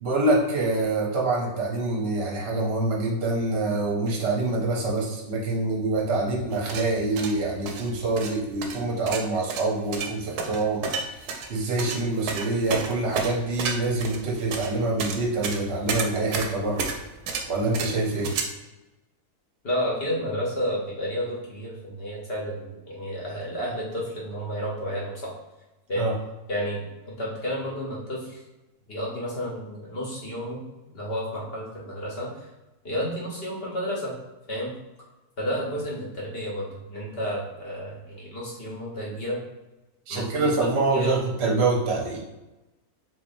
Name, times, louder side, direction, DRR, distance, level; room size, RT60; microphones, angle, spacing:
voice 1, 0.0-10.9 11.2-16.9 17.5-18.3 25.9-26.1 40.1-42.2, right 2 dB, 50° right, -2 dB, 0.9 m, -25 dB
sound 1, 6.5-18.4, right 5 dB, 85° right, 1.1 m, -32 dB
voice 2, 19.6-25.3 25.9-26.1 26.5-28.4 28.9-30.6 30.9-32.5 32.8-34.1 34.5-34.7 35.4-39.4 40.1-40.5 40.9-41.1, equal, 45° left, -4 dB, 1.1 m, -31 dB
4.0 x 3.1 x 2.6 m, 1.0 s
omnidirectional pair, 1.7 m